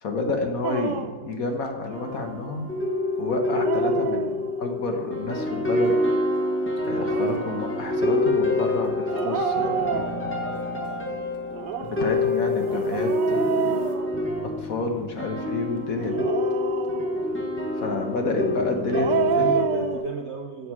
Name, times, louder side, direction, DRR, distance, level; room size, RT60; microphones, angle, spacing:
voice 1, 0.0-2.7 3.2-6.0 6.8-10.1 11.8-13.8 14.6-16.3 17.8-19.5, left 3 dB, 55° left, 4 dB, 1.4 m, -29 dB
Dog, 0.6-1.3 3.3-4.7 6.8-7.6 9.1-10.6 11.5-14.7 16.0-17.4 18.7-20.0, right 9 dB, 75° right, 1.3 m, -29 dB
sound 1, 1.9-20.0, left 2 dB, 10° left, 0.8 m, -27 dB
sound 2, 5.8-14.0, left 5 dB, 90° left, 2.1 m, -46 dB
voice 2, 18.9-20.7, right 4 dB, 55° right, 2 dB, 0.8 m, -34 dB
15.0 x 6.3 x 4.8 m, 1.4 s
omnidirectional pair, 2.0 m